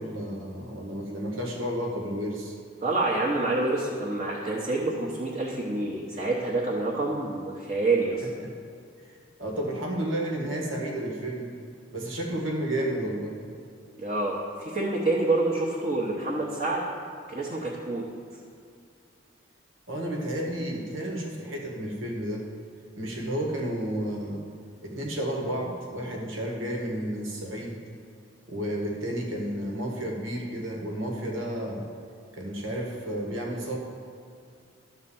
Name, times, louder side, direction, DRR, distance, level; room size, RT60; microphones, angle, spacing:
voice 1, 0.0-2.6 8.4-8.5 9.4-11.5 11.9-13.4 19.9-22.5 23.0-24.4 24.8-27.8 28.5-31.8 32.3-33.8, right 1 dB, 90° right, 0 dB, 1.7 m, -31 dB
voice 2, 2.8-8.3 14.0-16.8 17.3-18.0, right 2 dB, 35° right, -4 dB, 1.0 m, -27 dB
12.0 x 4.0 x 7.1 m, 2.3 s
head